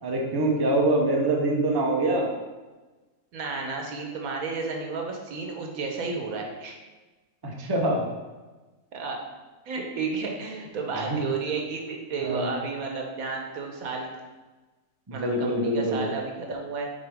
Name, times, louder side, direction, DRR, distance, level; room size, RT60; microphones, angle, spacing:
voice 1, 0.0-2.3 7.4-8.1 11.1-11.2 12.2-12.5 15.1-16.0, right 1 dB, 20° right, -1 dB, 0.7 m, -24 dB
voice 2, 3.3-6.8 8.9-9.2 9.7-14.1 15.1-16.9, right 4 dB, 85° right, 1 dB, 1.4 m, -32 dB
7.1 x 4.2 x 3.5 m, 1.2 s
omnidirectional pair, 1.5 m